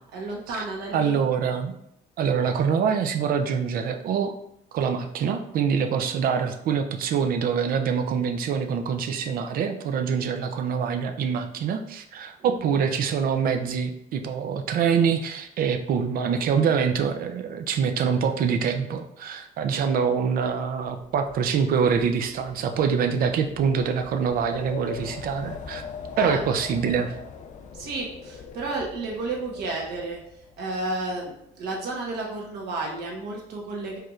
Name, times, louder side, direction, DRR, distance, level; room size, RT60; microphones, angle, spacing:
voice 1, 0.1-1.2 12.4-12.5 25.0-25.1 26.2-26.4 27.7-30.2 30.6-34.0, right 2 dB, 75° right, -1 dB, 1.3 m, -32 dB
voice 2, 0.9-1.7 2.2-4.3 4.7-25.8 26.2-27.1, right 6 dB, 60° right, 7 dB, 0.5 m, -25 dB
Wind, 20.4-30.5, left 6 dB, 45° left, 0.5 m, -42 dB
4.6 x 3.1 x 2.4 m, 0.78 s
cardioid pair, 110°, 17 cm